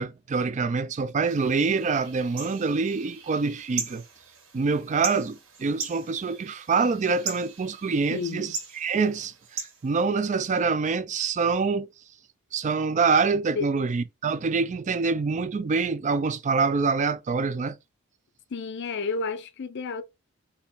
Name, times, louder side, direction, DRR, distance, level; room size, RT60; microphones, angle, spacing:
voice 1, 0.0-4.0 4.5-11.9 12.5-17.8, right 4 dB, 35° right, 0.4 m, -26 dB
sound 1, 1.3-10.6, right 5 dB, 65° right, 1.7 m, -39 dB
voice 2, 8.1-8.5 13.6-13.7 18.5-20.0, left 4 dB, 55° left, 0.5 m, -31 dB
4.3 x 2.9 x 3.7 m
head